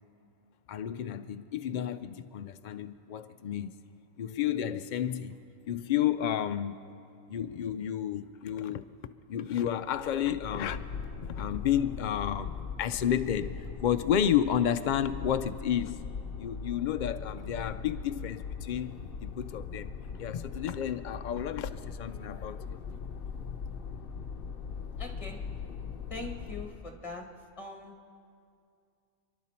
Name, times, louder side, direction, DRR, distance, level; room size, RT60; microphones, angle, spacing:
voice 1, 0.7-3.7 4.2-5.4 5.6-6.8 7.3-8.9 9.3-10.9 11.3-19.9 20.2-22.8, left 10 dB, 80° left, 0.4 m, -31 dB
sound 1, 9.9-26.9, left 6 dB, 55° left, 0.8 m, -40 dB
voice 2, 25.0-25.4 26.1-27.3 27.6-27.9, left 3 dB, 25° left, 1.6 m, -41 dB
28.5 x 11.5 x 4.3 m
omnidirectional pair, 1.3 m